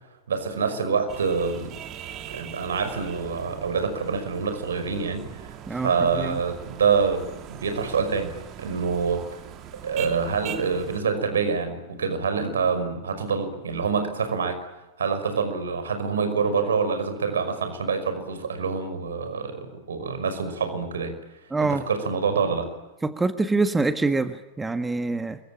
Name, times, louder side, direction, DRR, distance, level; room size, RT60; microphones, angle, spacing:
voice 1, 0.3-1.7 2.3-9.3 9.8-14.6 15.0-21.1 21.6-22.7, right 5 dB, 65° right, 9 dB, 5.6 m, -26 dB
sound 1, 1.1-11.0, right 9 dB, 35° right, 3.0 m, -41 dB
voice 2, 21.5-21.8 23.0-25.4, right 3 dB, 10° right, 10 dB, 1.5 m, -25 dB
28.0 x 23.5 x 8.9 m, 1.0 s
figure-of-eight pair, 90°, 0 cm